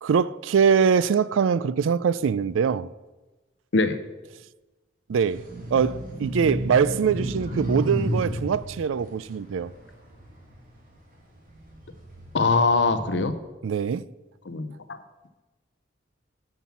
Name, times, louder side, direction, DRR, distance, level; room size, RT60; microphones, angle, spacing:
voice 1, 0.0-2.9 5.1-9.7 13.6-14.1, right 6 dB, 80° right, 0.4 m, -23 dB
sound 1, 5.3-10.8 11.4-13.2, equal, 45° right, 2.3 m, -32 dB
voice 2, 12.3-13.3 14.5-14.7, left 3 dB, 65° left, 0.7 m, -22 dB
9.5 x 5.9 x 7.1 m
head